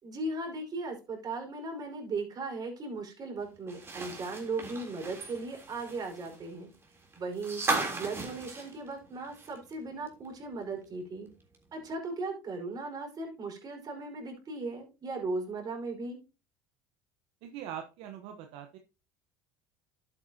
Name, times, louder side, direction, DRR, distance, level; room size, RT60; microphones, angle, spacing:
voice 1, 0.0-6.7 7.1-7.6 7.9-11.3 11.7-16.2, right 3 dB, 40° right, 1 dB, 5.1 m, -37 dB
sound 1, 3.7-9.7 10.1-10.2 11.5-11.6, right 3 dB, 25° right, 3.4 m, -37 dB
voice 2, 17.4-18.8, right 9 dB, 65° right, 5 dB, 1.2 m, -42 dB
11.5 x 8.5 x 2.9 m, 0.31 s
hypercardioid pair, 85°, 11 cm